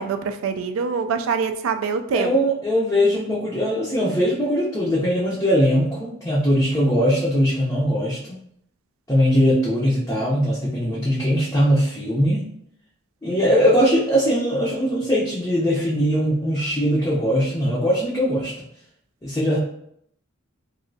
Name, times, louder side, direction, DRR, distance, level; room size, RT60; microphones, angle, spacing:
voice 1, 0.0-2.4, right 5 dB, 75° right, 7 dB, 0.3 m, -24 dB
voice 2, 2.1-8.4 9.1-12.4 13.2-18.5 19.2-19.6, equal, 15° left, -7 dB, 0.5 m, -20 dB
3.0 x 2.6 x 2.6 m, 0.71 s
head